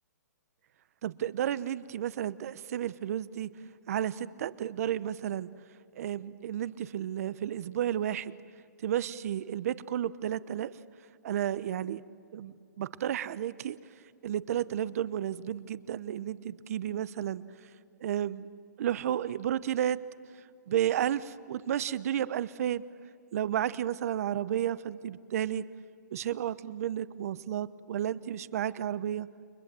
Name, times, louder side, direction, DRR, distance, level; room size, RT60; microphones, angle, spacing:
voice 1, 1.0-3.5 3.9-5.5 5.9-8.4 8.8-10.7 11.2-12.0 12.3-13.8 14.2-17.4 18.0-18.5 18.8-20.0 20.7-22.8 23.3-25.6 26.1-29.3, right 10 dB, 55° right, 16 dB, 0.9 m, -32 dB
30.0 x 23.5 x 7.7 m, 2.4 s
hypercardioid pair, 145°, 10 cm